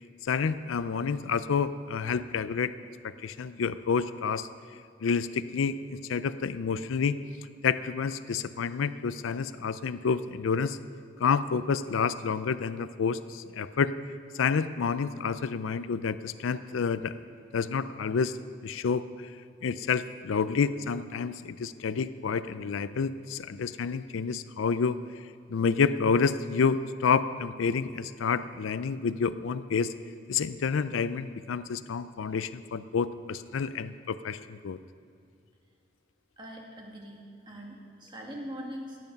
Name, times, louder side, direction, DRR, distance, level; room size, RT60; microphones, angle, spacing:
voice 1, 0.2-2.7 3.0-4.5 5.0-7.2 7.6-10.8 11.2-13.9 14.3-17.2 17.5-18.4 18.6-19.3 19.6-25.0 25.5-29.9 30.3-34.8, left 5 dB, 85° left, 13 dB, 0.4 m, -29 dB
voice 2, 36.4-39.0, equal, 25° right, 0 dB, 1.8 m, -42 dB
16.5 x 9.4 x 5.3 m, 2.4 s
head